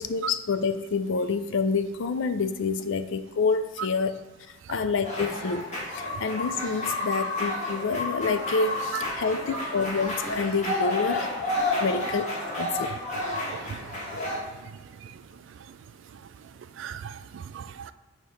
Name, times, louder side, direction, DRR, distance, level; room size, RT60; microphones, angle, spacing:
voice 1, 0.0-4.2 4.7-5.7 5.9-11.3 11.8-12.9, left 4 dB, 65° left, 11 dB, 0.4 m, -28 dB
sound 1, 5.0-14.4, left 2 dB, 35° left, 1.7 m, -30 dB
voice 2, 13.5-13.9 14.6-14.7 15.0-15.1 16.8-17.9, right 8 dB, 65° right, 13 dB, 0.3 m, -38 dB
6.6 x 3.0 x 5.5 m, 1.2 s
head